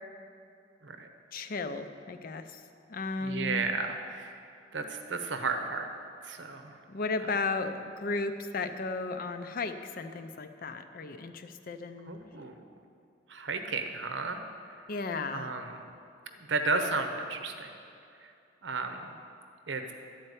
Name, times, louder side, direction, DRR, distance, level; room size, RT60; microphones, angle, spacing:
voice 1, 1.3-2.6 2.9-3.7 6.9-12.1 14.9-15.5, left 3 dB, 50° left, 8 dB, 0.5 m, -34 dB
voice 2, 3.2-4.3 4.7-5.9 6.2-6.7 12.1-12.5 13.3-14.4 14.7-14.8 15.3-15.7 16.4-17.7 18.2-18.3 18.6-19.1 19.7-19.9, right 4 dB, 75° right, 6 dB, 0.8 m, -33 dB
12.0 x 4.4 x 8.1 m, 2.5 s
head